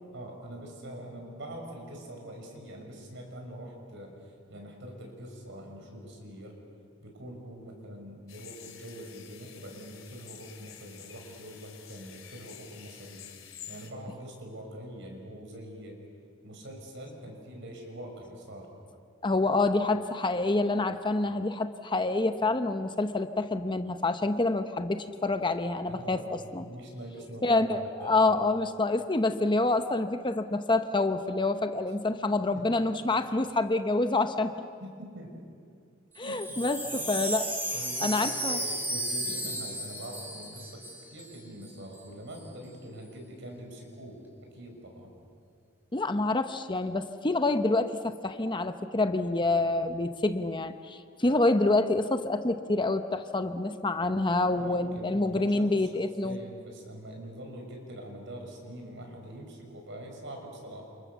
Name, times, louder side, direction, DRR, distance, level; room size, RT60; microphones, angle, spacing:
voice 1, 0.1-6.6 7.0-13.3 13.7-16.0 16.4-18.7 25.9-27.6 28.0-28.3 32.5-32.7 34.8-35.5 36.2-37.1 37.7-45.1 54.4-61.0, right 1 dB, 65° right, 2 dB, 6.1 m, -44 dB
sound 1, 8.3-13.9, left 10 dB, 80° left, 3.0 m, -49 dB
voice 2, 19.2-26.6 27.4-34.5 36.2-37.5 38.0-38.6 45.9-56.4, left 2 dB, 25° left, 9 dB, 0.9 m, -27 dB
Wind chime, 36.1-41.4 41.6-41.7 41.9-42.4, right 1 dB, 10° right, 4.5 m, -34 dB
29.5 x 27.5 x 7.1 m, 2.3 s
head